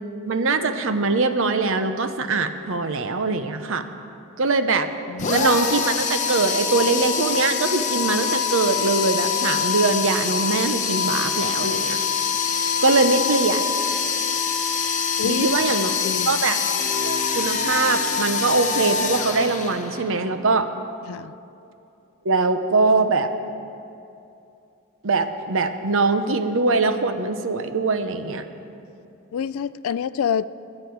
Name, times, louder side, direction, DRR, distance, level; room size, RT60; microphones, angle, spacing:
voice 1, 0.2-3.9 4.4-4.9 5.3-12.0 12.8-13.6 15.2-15.9 16.3-16.6 17.0-20.7 22.2-23.3 25.0-28.4, right 3 dB, 65° right, 9 dB, 0.8 m, -22 dB
voice 2, 5.1-5.5 15.2-15.7 16.0-16.4 21.1-21.3 29.3-30.5, left 7 dB, 75° left, 17 dB, 0.4 m, -27 dB
sound 1, 5.2-20.1, left 6 dB, 35° left, 1.0 m, -24 dB
Wind instrument woodwind instrument, 16.7-20.5, equal, 30° right, 3.4 m, -37 dB
22.0 x 9.8 x 4.7 m, 2.7 s
head